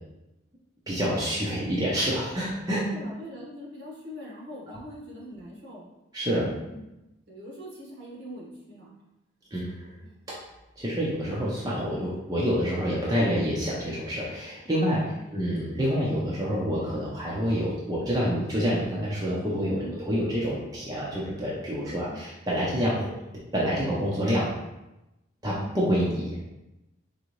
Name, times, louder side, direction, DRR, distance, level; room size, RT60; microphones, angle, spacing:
voice 1, 0.9-2.8 6.1-6.4 9.5-9.9 10.8-23.1 23.5-24.5 25.4-26.4, equal, 20° right, -6 dB, 0.7 m, -27 dB
voice 2, 2.8-5.8 6.4-6.9 7.3-8.9 10.0-10.2 15.1-15.4 19.7-20.0 22.0-22.3 25.5-25.8, equal, 60° right, -4 dB, 1.3 m, -43 dB
3.9 x 3.6 x 3.1 m, 0.95 s
head